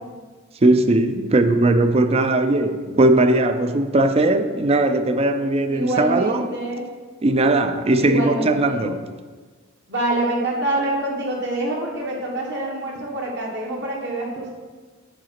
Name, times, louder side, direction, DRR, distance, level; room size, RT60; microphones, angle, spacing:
voice 1, 0.6-6.5 7.2-9.0, right 2 dB, 30° right, 0.4 m, -19 dB
voice 2, 5.7-6.9 8.0-8.8 9.9-14.5, right 1 dB, 60° right, 1.5 m, -26 dB
7.9 x 3.9 x 5.8 m
head